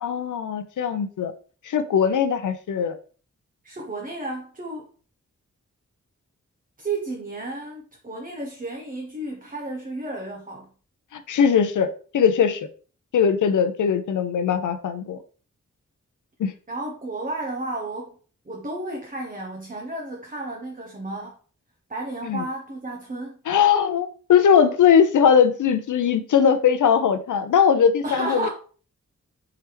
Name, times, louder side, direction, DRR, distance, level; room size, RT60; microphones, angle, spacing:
voice 1, 0.0-1.3 1.6-3.0 11.1-11.9 12.1-12.7 13.1-15.2 16.4-16.5 22.2-22.4 23.5-28.5, left 7 dB, 90° left, 0.5 m, -20 dB
voice 2, 3.6-4.9 6.8-10.7 16.7-18.2 18.5-21.4 21.9-23.4 28.0-28.5, right 2 dB, 30° right, 0.8 m, -32 dB
4.7 x 3.3 x 3.0 m
wide cardioid pair, 80°, 30 cm